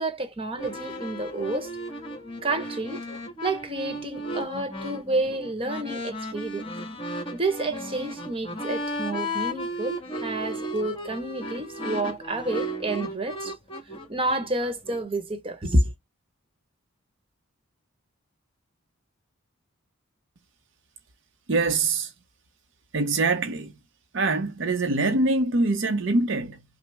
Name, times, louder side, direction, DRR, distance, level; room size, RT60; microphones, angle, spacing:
voice 1, 0.0-1.7 2.4-3.0 3.4-6.7 7.3-13.5 14.1-15.9, right 2 dB, 25° right, 1.0 m, -29 dB
sound 1, 0.6-15.0, equal, 25° left, 1.6 m, -35 dB
voice 2, 21.5-22.1 22.9-23.7 24.1-26.6, right 3 dB, 60° right, 0.6 m, -24 dB
5.9 x 2.0 x 3.4 m
head